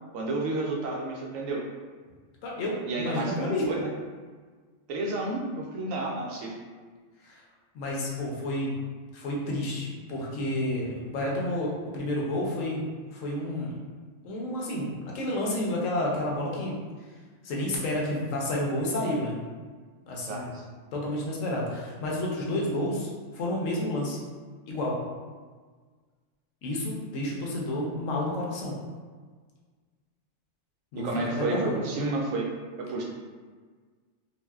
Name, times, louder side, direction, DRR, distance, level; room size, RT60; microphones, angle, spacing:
voice 1, 0.1-1.6 2.9-3.9 4.9-6.5 20.3-20.6 31.0-32.5 32.9-33.0, right 2 dB, 85° right, -1 dB, 1.0 m, -31 dB
voice 2, 2.4-3.7 7.2-7.4 7.7-8.7 9.1-13.7 14.2-16.8 17.4-19.3 20.1-20.5 20.9-24.2 24.7-25.0 26.6-28.8 30.9-31.8, left 1 dB, 85° left, -2 dB, 1.1 m, -30 dB
3.9 x 2.1 x 2.3 m, 1.5 s
omnidirectional pair, 1.3 m